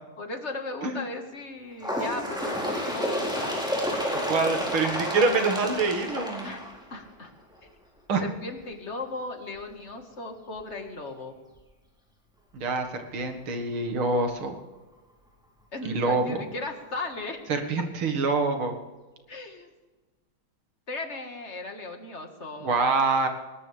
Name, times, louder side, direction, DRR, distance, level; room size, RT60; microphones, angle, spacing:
voice 1, 0.2-3.7 6.4-6.6 6.9-7.3 7.6-7.7 8.2-11.3 15.7-17.4 19.3-19.7 20.9-22.7, left 2 dB, 35° left, 4 dB, 1.8 m, -37 dB
Bird, 1.8-7.2 8.1-8.2 8.6-8.7 9.6-9.7 10.6-10.7 11.6-11.7, equal, ahead, 4.1 m, -30 dB
voice 2, 4.3-6.5 8.1-8.2 12.5-14.5 15.9-16.4 17.5-18.8 22.6-23.3, right 3 dB, 80° right, 4 dB, 2.6 m, -26 dB
19.5 x 19.5 x 3.4 m, 1.2 s
omnidirectional pair, 2.3 m